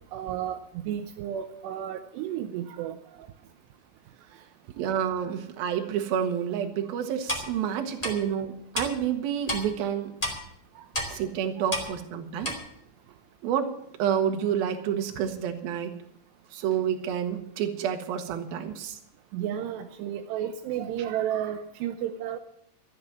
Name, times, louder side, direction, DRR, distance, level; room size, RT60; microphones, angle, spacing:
voice 1, 0.1-3.0 7.8-7.9 10.8-10.9 19.3-22.4, right 10 dB, 80° right, 6 dB, 2.9 m, -32 dB
voice 2, 4.8-10.1 11.1-12.6 13.4-13.7 14.0-15.9 16.5-19.0, right 9 dB, 65° right, 5 dB, 3.2 m, -29 dB
Clock, 7.3-7.4 8.0-8.1 8.7-8.9 9.5-9.6 10.2-10.3 10.9-11.1 11.7-11.9 12.4-12.5, left 1 dB, 10° left, 1.9 m, -29 dB
13.5 x 9.6 x 7.5 m, 0.73 s
omnidirectional pair, 4.8 m